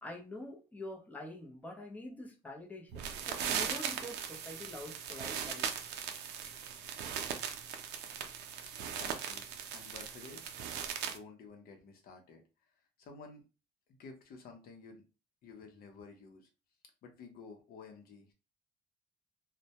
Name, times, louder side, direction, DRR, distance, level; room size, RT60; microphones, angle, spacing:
voice 1, 0.0-5.9, left 1 dB, 10° left, 1 dB, 0.6 m, -46 dB
sound 1, 2.9-11.2, right 8 dB, 85° right, 0.5 m, -39 dB
voice 2, 8.8-10.5 11.0-13.5 13.9-15.0 15.4-16.5 17.0-18.3, left 4 dB, 60° left, 3 dB, 0.7 m, -52 dB
2.1 x 2.1 x 2.8 m, 0.30 s
cardioid pair, 110°, 17 cm